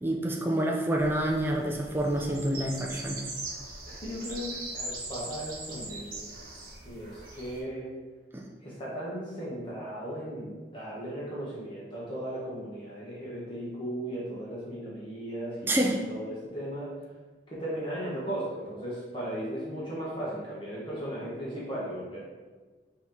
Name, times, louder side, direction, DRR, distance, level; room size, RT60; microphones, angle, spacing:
voice 1, 0.0-3.2 8.3-8.4 15.7-16.0, right 1 dB, 10° right, -1 dB, 0.3 m, -28 dB
sound 1, 1.0-7.6, right 2 dB, 50° right, 1.0 m, -41 dB
voice 2, 3.9-6.3 6.8-7.9 8.6-15.8 16.1-16.9 17.5-22.2, right 1 dB, 30° left, -7 dB, 1.0 m, -36 dB
5.6 x 2.8 x 3.0 m, 1.3 s
head